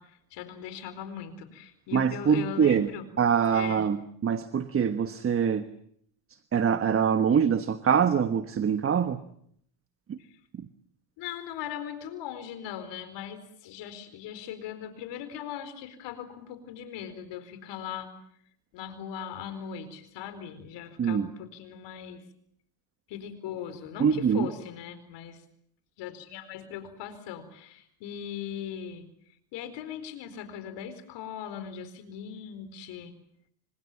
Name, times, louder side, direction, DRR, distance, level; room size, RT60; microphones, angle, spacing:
voice 1, 0.0-3.1 3.5-3.9 11.2-18.1 18.7-22.2 23.1-25.4 26.0-29.0 29.5-33.1, left 9 dB, 65° left, 11 dB, 4.5 m, -39 dB
voice 2, 1.9-2.9 3.2-5.6 6.5-9.2 10.1-10.2 21.0-21.3 24.0-24.5, right 7 dB, 30° right, 11 dB, 1.3 m, -24 dB
26.5 x 26.0 x 7.4 m, 0.67 s
supercardioid pair, 110°, 46 cm